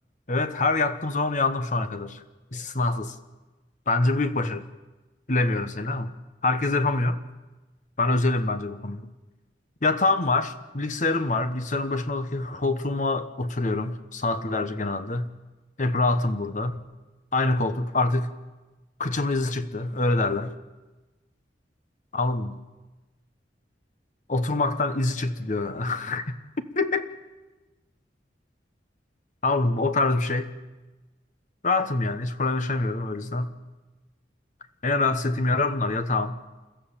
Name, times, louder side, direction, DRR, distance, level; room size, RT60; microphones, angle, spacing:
voice 1, 0.3-2.2 2.5-3.1 3.9-4.6 5.3-6.1 6.4-7.2 8.0-9.1 9.8-15.3 15.8-16.8 17.3-18.3 19.0-20.5 22.1-22.6 24.3-27.1 29.4-30.5 31.6-33.5 34.8-36.4, left 2 dB, 45° left, 10 dB, 1.2 m, -25 dB
29.0 x 14.0 x 7.4 m, 1.2 s
head